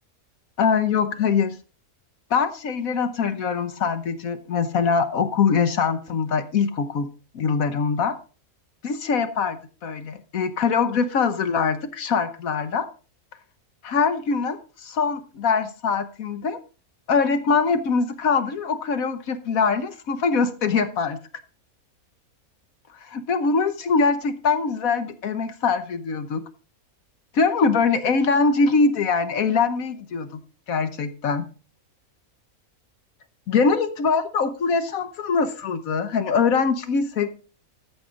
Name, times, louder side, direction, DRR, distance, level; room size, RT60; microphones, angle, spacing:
voice 1, 0.6-1.6 2.3-7.1 7.3-8.2 8.8-12.9 13.8-16.6 17.1-21.2 23.1-26.4 27.3-30.3 30.7-31.5 33.5-37.3, left 5 dB, 70° left, 10 dB, 1.3 m, -23 dB
13.5 x 7.8 x 3.7 m, 0.36 s
omnidirectional pair, 1.5 m